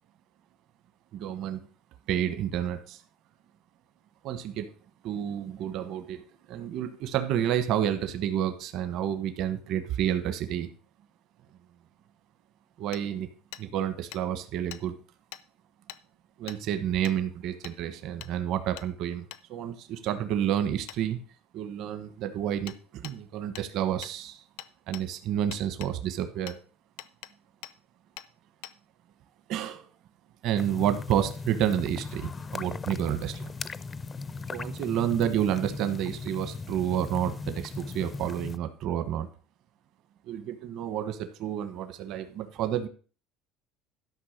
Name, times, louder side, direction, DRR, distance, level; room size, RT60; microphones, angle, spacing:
voice 1, 1.1-1.6 2.1-3.0 4.2-4.7 5.0-6.2 6.5-10.7 12.8-13.3 13.6-14.9 16.4-21.2 21.5-24.4 24.9-26.5 29.5-29.9 30.4-33.5 34.5-39.3 40.3-42.9, right 10 dB, 55° right, 9 dB, 1.2 m, -30 dB
Hammer, 12.9-13.0 13.5-13.7 14.1-14.2 14.7-14.8 15.3-15.4 15.9-16.0 16.5-16.6 17.0-17.2 17.6-17.8 18.2-18.3 18.8-18.9 19.3-19.4 20.9-21.0 22.7-22.8 23.0-23.2 23.6-23.7 24.0-24.2 24.6-25.1 25.5-25.9 26.5-26.6 27.0-27.3 27.6-27.8 28.2-28.3 28.6-28.8, left 15 dB, 75° left, 0.6 m, -43 dB
sound 1, 30.6-38.6, left 4 dB, 20° left, 0.4 m, -38 dB
12.0 x 5.6 x 6.5 m, 0.39 s
cardioid pair, 150°, 0 cm